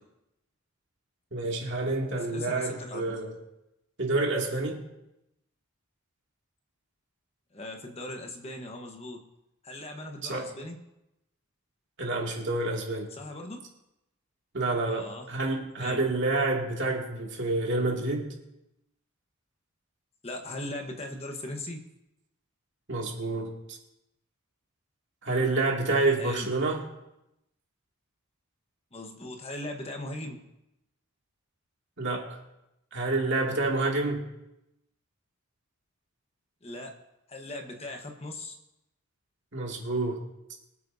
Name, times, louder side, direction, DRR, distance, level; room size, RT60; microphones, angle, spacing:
voice 1, 1.3-3.3 4.0-4.8 10.2-10.5 12.0-13.1 14.5-18.3 22.9-23.8 25.2-26.8 32.0-32.4 32.9-34.2 39.5-40.2, right 2 dB, 55° right, -1 dB, 2.5 m, -28 dB
voice 2, 2.3-3.0 7.5-9.2 9.6-10.8 13.1-13.6 14.8-15.3 15.8-16.0 20.2-21.8 26.1-26.5 28.9-30.4 36.6-36.9 37.3-38.6, left 1 dB, 30° left, 2 dB, 1.2 m, -39 dB
24.5 x 8.4 x 2.8 m, 0.88 s
head